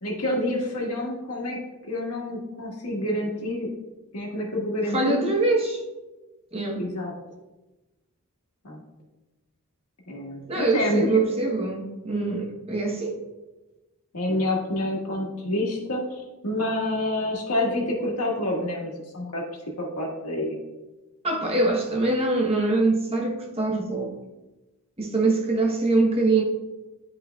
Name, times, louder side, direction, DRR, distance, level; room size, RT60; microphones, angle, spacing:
voice 1, 0.0-1.6 1.9-3.7 4.1-5.2 6.8-7.1 8.6-8.8 10.1-11.2 14.1-19.4 19.8-20.6, left 1 dB, 80° left, -2 dB, 1.7 m, -28 dB
voice 2, 4.9-5.8 6.5-6.8 10.5-13.2 21.2-24.1 25.0-26.4, right 2 dB, 25° right, 0 dB, 0.9 m, -23 dB
11.0 x 4.9 x 2.3 m, 1.1 s
head